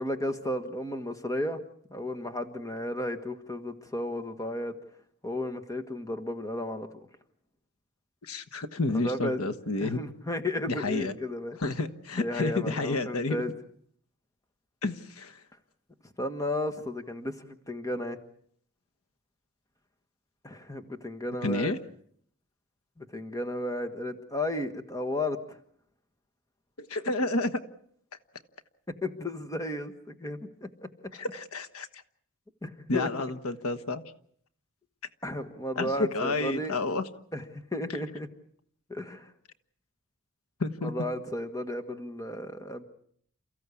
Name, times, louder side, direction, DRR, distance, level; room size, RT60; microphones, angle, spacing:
voice 1, 0.0-1.6 1.9-4.7 5.2-6.9 8.9-9.4 9.8-11.6 12.2-13.5 16.2-18.2 20.4-21.7 23.0-25.6 28.9-30.7 32.6-33.1 35.2-36.8 37.3-38.3 38.9-39.3 40.8-42.8, left 1 dB, 15° left, 7 dB, 1.4 m, -33 dB
voice 2, 8.2-10.0 10.7-11.1 11.6-13.4 14.8-15.4 21.4-21.8 26.8-27.6 31.1-32.0 32.9-34.0 35.8-37.0 40.6-40.9, left 2 dB, 80° left, 8 dB, 1.3 m, -30 dB
29.0 x 15.0 x 8.4 m, 0.64 s
head